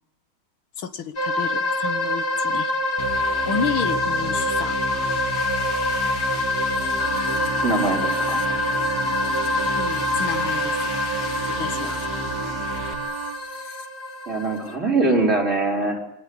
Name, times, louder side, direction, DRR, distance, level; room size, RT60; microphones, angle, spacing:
voice 1, 0.8-2.7 3.5-4.8 9.8-11.0 11.6-12.0, left 7 dB, 70° left, 9 dB, 1.9 m, -30 dB
sound 1, 1.2-14.7, left 2 dB, 30° left, 2.5 m, -25 dB
sound 2, 3.0-12.9, equal, 50° left, 3.0 m, -34 dB
Wind instrument woodwind instrument, 7.0-13.4, right 8 dB, 50° right, 1.6 m, -34 dB
voice 2, 7.6-8.4 14.3-16.0, right 2 dB, 35° right, -1 dB, 4.7 m, -22 dB
25.0 x 18.0 x 8.6 m, 0.86 s
omnidirectional pair, 2.4 m